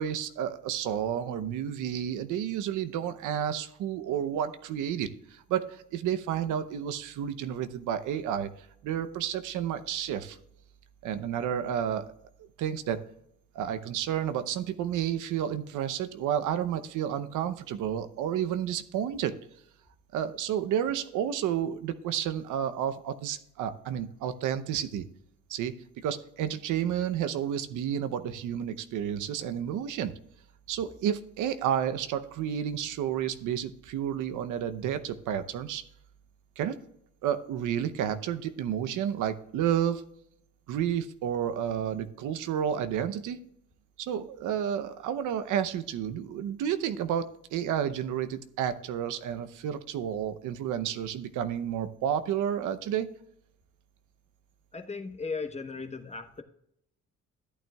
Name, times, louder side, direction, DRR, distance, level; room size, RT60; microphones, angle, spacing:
voice 1, 0.0-8.5 8.8-10.4 11.0-12.1 12.4-13.0 13.5-19.3 20.1-25.1 25.5-25.7 26.0-30.2 30.7-35.8 36.6-36.8 37.2-40.0 40.7-43.4 44.0-53.1, right 9 dB, 90° right, 11 dB, 0.8 m, -31 dB
voice 2, 54.7-56.4, left 4 dB, 20° left, 6 dB, 1.0 m, -36 dB
13.5 x 8.9 x 2.3 m, 0.74 s
cardioid pair, 90°, 30 cm